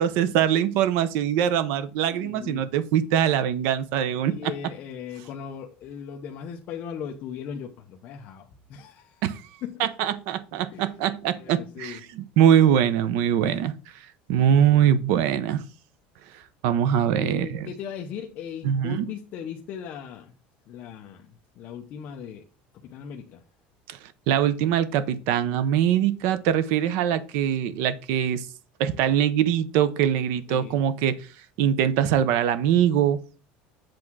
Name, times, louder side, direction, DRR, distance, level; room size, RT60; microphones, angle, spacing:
voice 1, 0.0-4.5 9.2-9.4 9.8-13.7 14.3-15.6 16.6-17.7 18.6-19.1 23.9-24.0 24.3-28.5 28.8-31.3 31.6-33.2, right 9 dB, 55° right, 0.7 m, -22 dB
voice 2, 2.1-2.7 4.3-9.2 9.6-9.9 10.7-10.9 11.4-12.0 14.3-14.9 17.1-20.4 20.7-22.5 22.8-23.4 30.5-30.8, left 8 dB, 35° left, 0.7 m, -38 dB
7.7 x 3.6 x 6.0 m
cardioid pair, 180°, 4 cm